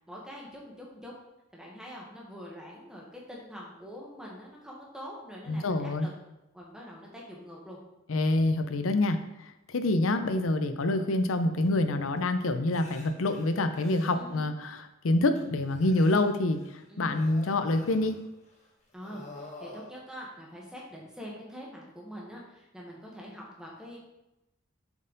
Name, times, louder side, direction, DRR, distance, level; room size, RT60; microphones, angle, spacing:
voice 1, 0.1-1.1 1.5-6.1 6.5-7.8 14.1-14.5 16.9-17.2 18.9-24.0, equal, 5° right, -3 dB, 1.3 m, -44 dB
voice 2, 5.5-6.1 8.1-16.6 17.0-18.2, left 2 dB, 80° left, 9 dB, 0.6 m, -26 dB
sound 1, 11.6-11.7 12.2-12.3 12.7-14.4 15.3-16.8 17.1-18.7 18.9-19.9, left 2 dB, 35° left, 1.2 m, -49 dB
7.0 x 4.4 x 3.9 m, 0.93 s
head